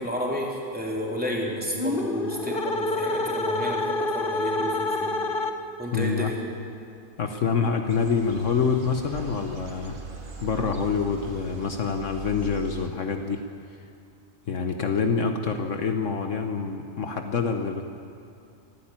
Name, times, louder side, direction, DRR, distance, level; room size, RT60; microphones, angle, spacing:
voice 1, 0.0-5.1 5.8-6.4, equal, 5° right, -3 dB, 3.7 m, -31 dB
sound 1, 1.7-5.9, left 2 dB, 45° left, 1.2 m, -28 dB
voice 2, 5.9-6.3 7.2-10.0 10.4-13.4 14.5-17.8, left 5 dB, 65° left, 5 dB, 1.4 m, -26 dB
sound 2, 7.9-12.9, right 3 dB, 40° right, 1.8 m, -40 dB
24.5 x 13.0 x 8.9 m, 2.5 s
omnidirectional pair, 1.4 m